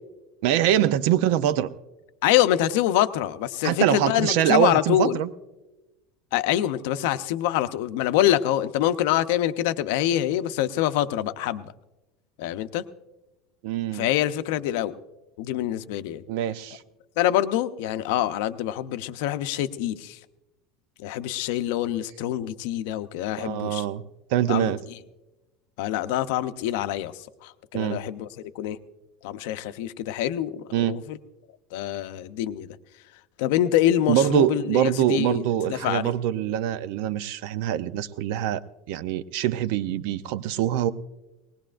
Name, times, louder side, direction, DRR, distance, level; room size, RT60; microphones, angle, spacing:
voice 1, 0.4-1.7 3.6-5.3 13.6-14.0 16.3-16.8 23.4-24.0 24.3-24.8 27.7-28.0 30.7-30.9 34.1-38.6 38.9-40.9, right 11 dB, 70° right, 14 dB, 0.6 m, -24 dB
voice 2, 2.2-5.2 6.3-11.7 12.4-12.8 13.9-14.9 15.4-16.2 17.2-20.2 21.0-23.8 24.5-24.7 25.8-28.3 28.5-28.8 29.2-31.2 31.7-32.7 33.4-36.1, left 12 dB, 75° left, 11 dB, 0.6 m, -25 dB
20.0 x 19.5 x 2.5 m, 1.0 s
cardioid pair, 160°, 0 cm